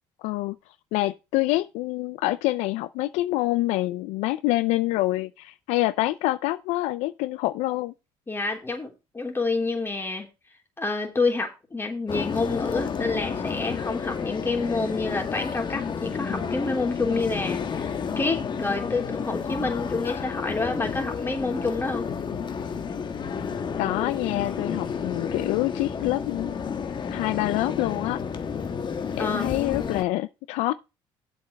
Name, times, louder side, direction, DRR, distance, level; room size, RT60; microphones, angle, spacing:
voice 1, 0.2-0.5 0.9-7.9 23.8-26.5 27.1-28.2 29.2-30.7, left 17 dB, 80° left, 0.5 m, -26 dB
voice 2, 8.3-10.3 10.8-22.1 29.2-29.6, left 3 dB, 20° left, 3.4 m, -28 dB
sound 1, 12.1-30.0, left 6 dB, 45° left, 1.3 m, -31 dB
7.5 x 5.4 x 7.0 m
supercardioid pair, 80°, 11 cm